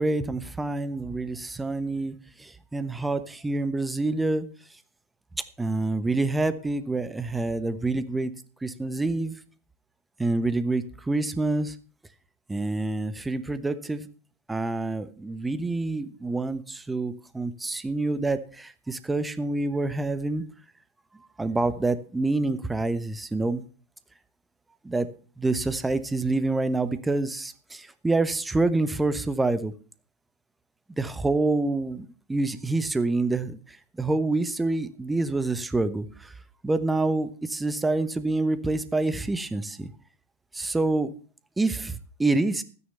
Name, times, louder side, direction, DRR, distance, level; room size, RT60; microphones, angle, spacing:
voice 1, 0.0-4.5 5.6-8.3 8.6-9.3 10.2-11.7 12.5-14.1 14.5-20.4 21.4-23.6 24.8-25.1 25.4-29.7 30.9-33.6 34.0-36.3 36.6-39.9 40.5-41.1 41.6-42.6, right 2 dB, 10° right, 13 dB, 1.1 m, -27 dB
13.0 x 9.8 x 5.6 m, 0.39 s
figure-of-eight pair, 90°, 0 cm